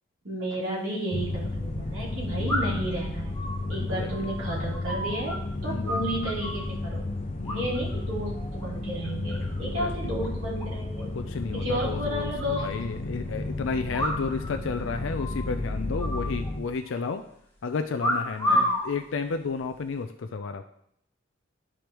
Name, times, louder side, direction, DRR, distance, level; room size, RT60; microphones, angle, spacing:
voice 1, 0.2-3.3 3.7-7.1 7.5-11.1 11.5-12.7 18.5-18.7, right 1 dB, 75° right, -6 dB, 3.1 m, -32 dB
sound 1, 0.7-0.8 2.5-2.9 3.3-5.4 5.6-6.7 7.4-8.0 8.3-8.6 9.0-9.6 9.9-10.0 10.2-10.3 10.6-10.7 11.0-11.1 11.8-12.8 13.9-14.5 14.8-14.9 15.2-15.5 16.0-16.9 18.0-18.8 19.6-20.0, equal, 10° left, 1.3 m, -30 dB
sound 2, 1.1-16.6, left 2 dB, 35° left, 0.7 m, -33 dB
voice 2, 5.7-6.0 7.4-7.8 9.6-9.9 11.1-17.2 17.6-20.6, left 4 dB, 75° left, 7 dB, 0.4 m, -32 dB
12.0 x 4.9 x 3.0 m, 0.72 s
head